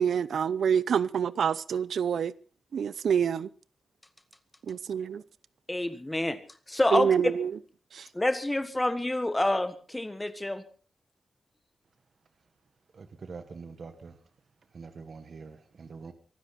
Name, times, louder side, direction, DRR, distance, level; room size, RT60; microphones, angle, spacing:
voice 1, 0.0-2.3 2.7-3.5 4.7-5.2 6.9-7.5 7.9-8.1, right 7 dB, 70° right, 0.7 m, -26 dB
voice 2, 5.7-6.4 6.7-7.1 8.1-10.6, left 1 dB, 10° left, 1.5 m, -27 dB
voice 3, 12.9-14.2 14.7-16.1, right 4 dB, 45° right, 1.6 m, -44 dB
24.0 x 12.5 x 4.2 m
wide cardioid pair, 170°, 0 cm